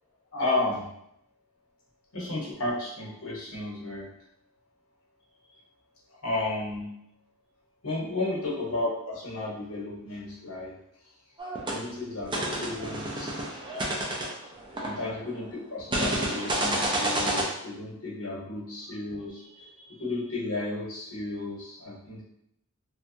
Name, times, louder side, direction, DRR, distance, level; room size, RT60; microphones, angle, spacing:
voice 1, 0.3-0.8 2.1-4.1 6.2-6.9 7.8-10.7 11.7-13.3 14.8-22.2, left 2 dB, 75° left, -4 dB, 1.0 m, -33 dB
sound 1, 11.4-11.8 12.3-15.3 15.9-17.4, right 1 dB, 20° right, 0.4 m, -29 dB
2.7 x 2.2 x 2.6 m, 0.77 s
head